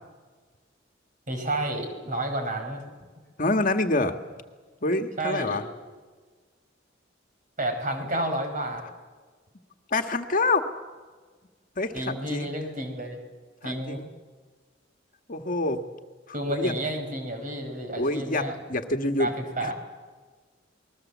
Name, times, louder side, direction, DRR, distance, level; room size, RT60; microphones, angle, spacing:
voice 1, 1.3-2.8 5.2-5.6 7.6-8.8 11.9-13.2 13.6-14.0 16.3-18.6 19.2-19.7, right 1 dB, 45° right, 5 dB, 5.3 m, -30 dB
voice 2, 3.4-4.2 4.8-5.6 9.9-10.6 11.8-12.5 13.6-14.1 15.3-15.8 16.5-16.8 18.0-19.3 19.6-19.7, left 2 dB, 45° left, 6 dB, 1.6 m, -26 dB
28.0 x 20.5 x 7.3 m, 1.4 s
head